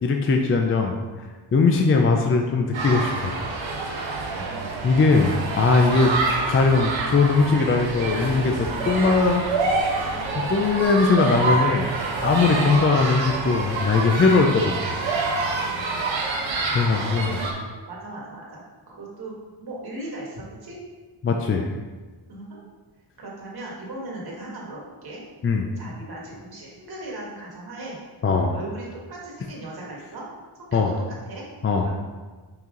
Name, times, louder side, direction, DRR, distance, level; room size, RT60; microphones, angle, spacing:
voice 1, 0.0-1.0 1.5-3.4 4.8-6.2 6.5-9.6 10.3-11.9 12.2-15.0 16.7-17.3 21.2-21.7 25.4-25.7 28.2-28.5 30.7-30.9 31.6-31.9, left 4 dB, 30° left, 3 dB, 0.4 m, -20 dB
sound 1, 2.7-17.5, right 3 dB, 80° right, 1.1 m, -27 dB
voice 2, 4.3-4.8 15.7-16.0 16.9-18.6 18.9-20.8 22.3-22.6 23.2-25.2 25.8-28.0 28.5-30.3 30.6-31.4 31.8-31.9, right 2 dB, 55° right, -4 dB, 1.8 m, -38 dB
5.8 x 4.6 x 3.8 m, 1.3 s
wide cardioid pair, 140°, 45 cm